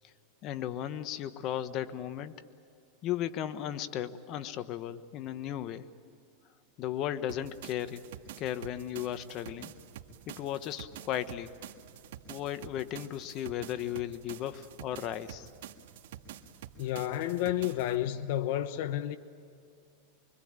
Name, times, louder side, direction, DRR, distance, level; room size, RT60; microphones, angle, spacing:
voice 1, 0.4-2.3 3.0-5.8 6.8-8.0 8.4-9.7 10.3-11.5 12.3-15.5, left 11 dB, 45° left, 1.2 m, -35 dB
sound 1, 7.3-18.0, right 10 dB, 75° right, 1.8 m, -48 dB
voice 2, 16.8-19.2, left 12 dB, 65° left, 1.1 m, -31 dB
25.5 x 24.5 x 8.9 m
supercardioid pair, 135°, 0 cm